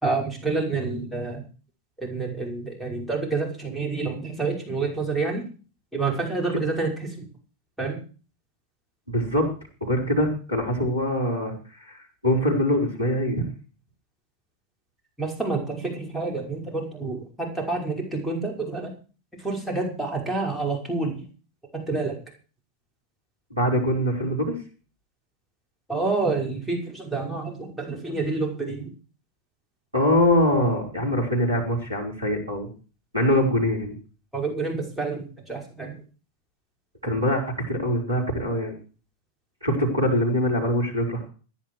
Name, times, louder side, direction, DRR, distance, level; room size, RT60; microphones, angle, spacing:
voice 1, 0.0-1.4 2.0-5.4 5.9-7.3 7.8-8.0 15.2-18.9 19.4-21.2 21.7-22.2 25.9-28.9 34.3-35.9, right 3 dB, ahead, 2 dB, 5.6 m, -28 dB
voice 2, 9.1-9.5 9.8-11.5 11.8-13.5 23.5-24.5 29.9-32.7 33.1-34.0 37.0-38.7 39.6-41.3, equal, 85° right, 1 dB, 5.2 m, -23 dB
16.5 x 10.5 x 4.8 m, 0.36 s
figure-of-eight pair, 90°, 0 cm